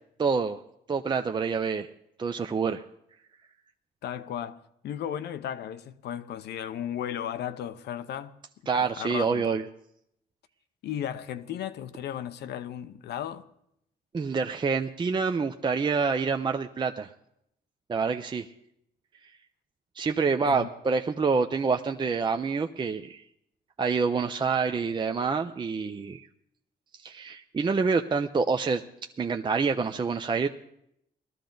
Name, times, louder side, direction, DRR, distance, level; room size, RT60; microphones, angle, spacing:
voice 1, 0.2-0.6 0.9-1.9 2.2-2.8 8.7-9.6 14.1-17.1 17.9-18.5 20.0-23.2 23.8-26.2 26.9-28.8 29.2-30.5, right 5 dB, 25° right, 0.5 m, -27 dB
voice 2, 4.0-4.6 4.8-8.4 8.7-9.6 10.8-13.4 20.4-20.7, left 10 dB, 75° left, 0.7 m, -35 dB
19.5 x 13.0 x 3.9 m
cardioid pair, 95°, 17 cm